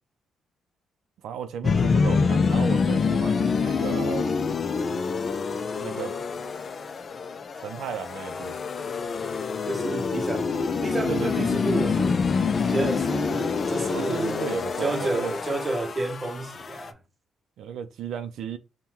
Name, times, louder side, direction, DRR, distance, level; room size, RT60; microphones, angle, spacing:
voice 1, 1.2-4.3 5.8-6.1 7.6-8.6 11.1-11.6 13.9-15.3 17.6-18.6, right 8 dB, 80° right, 0.5 m, -34 dB
sound 1, 1.6-16.9, left 5 dB, 45° left, 0.4 m, -26 dB
voice 2, 9.6-12.2 12.7-14.4 14.8-17.0, right 2 dB, 25° right, 0.8 m, -30 dB
5.4 x 2.2 x 2.9 m
cardioid pair, 90°, 0 cm